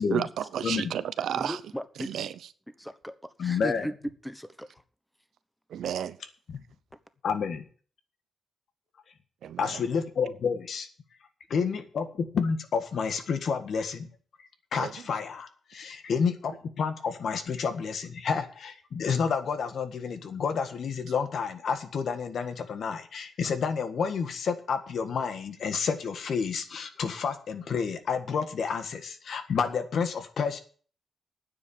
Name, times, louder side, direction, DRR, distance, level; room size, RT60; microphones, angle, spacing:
voice 1, 0.0-1.6 2.0-2.3 5.7-6.2 9.4-9.8 14.7-14.9, right 9 dB, 85° right, 15 dB, 0.8 m, -32 dB
voice 2, 1.4-2.2 2.8-3.2 3.4-3.9 4.2-4.7, equal, ahead, 12 dB, 1.1 m, -37 dB
voice 3, 3.4-3.9 6.5-6.6 7.2-7.6 9.6-10.9 11.5-14.1 14.7-30.6, left 6 dB, 65° left, 9 dB, 1.7 m, -30 dB
9.6 x 7.4 x 9.2 m, 0.44 s
cardioid pair, 105°, 0 cm